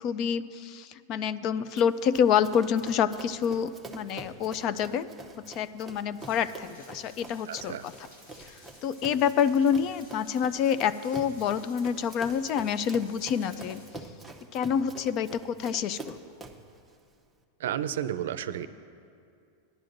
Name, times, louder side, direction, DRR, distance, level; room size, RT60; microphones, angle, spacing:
voice 1, 0.0-5.1 5.5-7.9 8.8-13.8 14.5-16.2, left 8 dB, 35° left, 15 dB, 0.3 m, -27 dB
Run, 1.8-16.7, right 2 dB, ahead, 0.7 m, -46 dB
sound 1, 6.2-13.9, left 1 dB, 80° left, 3.2 m, -55 dB
voice 2, 7.5-7.9 17.6-18.7, right 10 dB, 85° right, 12 dB, 0.4 m, -32 dB
18.0 x 11.0 x 2.6 m, 2.4 s
supercardioid pair, 160°, 0 cm